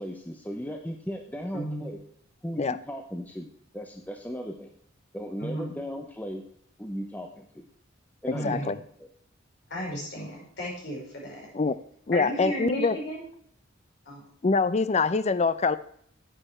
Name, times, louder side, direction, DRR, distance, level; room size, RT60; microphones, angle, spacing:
voice 1, 0.0-2.0 2.4-3.5 3.7-4.7 5.1-6.4 6.8-7.5 8.2-8.8, equal, 10° left, 3 dB, 0.8 m, -36 dB
voice 2, 5.4-5.7 8.3-8.7 9.7-11.5 12.1-13.2 14.1-14.2, equal, 60° left, -2 dB, 5.3 m, -34 dB
voice 3, 8.3-8.8 11.5-11.7 12.1-12.9 14.4-15.8, left 4 dB, 35° left, 15 dB, 0.5 m, -24 dB
9.9 x 8.8 x 4.4 m, 0.66 s
head